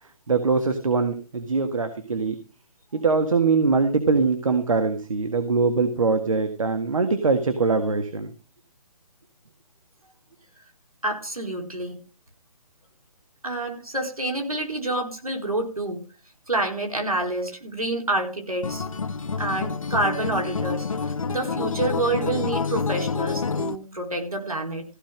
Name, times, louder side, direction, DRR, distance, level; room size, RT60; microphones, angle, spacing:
voice 1, 0.0-2.4 2.9-8.3, right 4 dB, 65° right, 8 dB, 1.7 m, -22 dB
voice 2, 11.0-12.0 13.4-16.0 16.5-18.8 19.4-24.8, right 2 dB, 90° right, 2 dB, 4.4 m, -28 dB
Acoustic guitar, 18.6-23.8, left 4 dB, 70° left, 1.0 m, -28 dB
15.5 x 5.8 x 6.4 m, 0.34 s
figure-of-eight pair, 140°, 18 cm